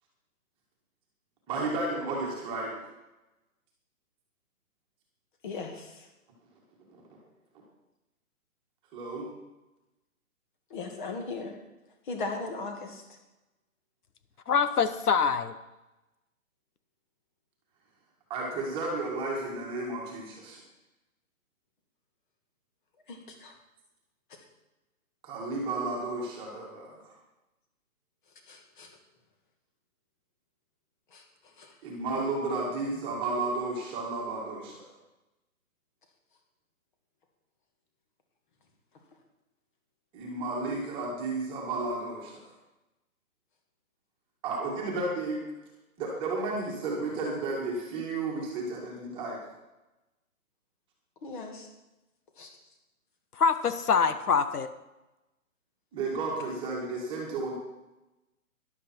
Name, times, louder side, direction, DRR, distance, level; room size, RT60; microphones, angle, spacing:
voice 1, 1.5-2.7 6.9-7.0 8.9-9.3 18.3-20.6 25.2-27.1 31.8-34.8 40.1-42.4 44.4-45.4 46.0-49.4 55.9-57.5, right 3 dB, 10° right, -2 dB, 1.8 m, -32 dB
voice 2, 5.4-6.1 10.7-11.6 12.1-13.0 23.1-23.5 28.5-28.9 31.1-31.2 31.6-31.7 51.2-51.7 52.4-52.5, left 3 dB, 35° left, 4 dB, 2.2 m, -38 dB
voice 3, 14.5-15.5 53.4-54.7, left 6 dB, 85° left, 11 dB, 1.2 m, -24 dB
13.5 x 11.5 x 4.5 m, 1.0 s
hypercardioid pair, 165°, 44 cm